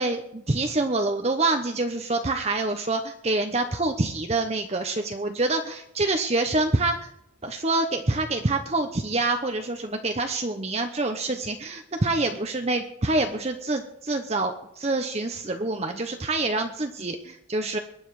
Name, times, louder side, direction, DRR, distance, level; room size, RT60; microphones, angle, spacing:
voice 1, 0.0-7.0 7.4-17.8, right 2 dB, 30° right, 5 dB, 0.9 m, -26 dB
22.5 x 9.7 x 4.8 m, 0.78 s
head